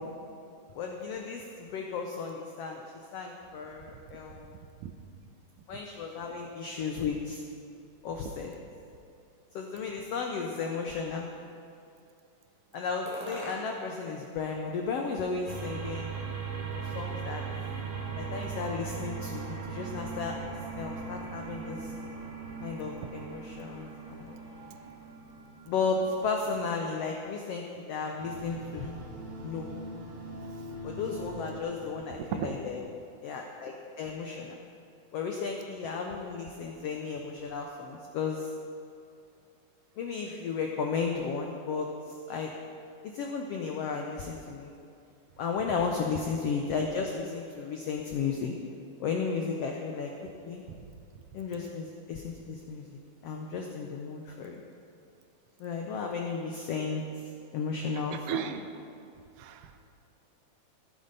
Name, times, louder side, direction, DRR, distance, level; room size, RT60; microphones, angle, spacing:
voice 1, 0.7-2.8 3.1-4.5 5.7-7.4 8.0-8.5 9.5-11.3 12.7-16.1 16.7-17.4 18.2-20.4 20.8-21.9 22.6-24.4 25.7-28.9 29.4-29.7 30.8-32.8 33.2-34.6 35.1-38.5 40.0-41.9 42.3-42.5 43.0-44.7 45.4-48.5 49.0-50.6 51.3-54.6 55.6-57.0 57.5-58.4, left 5 dB, 80° left, 2 dB, 1.4 m, -34 dB
voice 2, 3.9-4.9 6.1-6.2 19.6-19.7 23.0-23.1 32.1-32.6 50.8-50.9 58.1-58.7 59.4-59.8, right 9 dB, 85° right, 7 dB, 2.4 m, -37 dB
sound 1, 9.8-10.9 11.5-12.2 13.0-14.0 14.3-15.3, equal, 5° right, 2.7 m, -46 dB
sound 2, 15.5-27.0 28.2-31.6, right 4 dB, 55° right, 0.8 m, -39 dB
15.5 x 9.2 x 4.0 m, 2.6 s
omnidirectional pair, 3.7 m